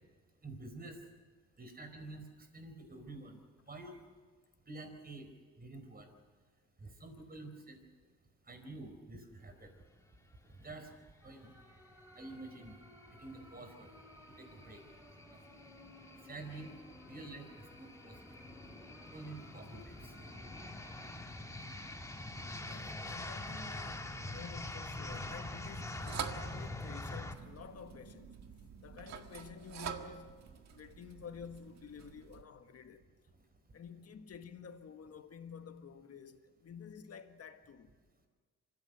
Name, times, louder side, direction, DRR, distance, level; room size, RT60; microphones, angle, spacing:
voice 1, 0.4-1.0 1.6-2.2 2.5-3.4 3.7-3.9 4.7-5.3 5.6-6.1 6.8-7.8 8.5-9.7 10.6-10.9 11.2-11.5 12.1-12.8 13.2-13.9 14.4-14.8 16.3-16.7 17.1-17.5 17.7-18.2 19.1-19.9, right 2 dB, 30° right, 4.7 m, -48 dB
sound 1, 11.2-24.2, equal, 10° right, 3.8 m, -60 dB
sound 2, 11.6-27.3, left 2 dB, 10° left, 1.8 m, -45 dB
voice 2, 22.6-28.4 28.8-30.4 30.7-33.1 33.7-37.9, left 7 dB, 50° left, 1.8 m, -51 dB
sound 3, 25.1-32.4, right 7 dB, 60° right, 1.8 m, -47 dB
24.5 x 15.5 x 8.2 m
cardioid pair, 90°, 31 cm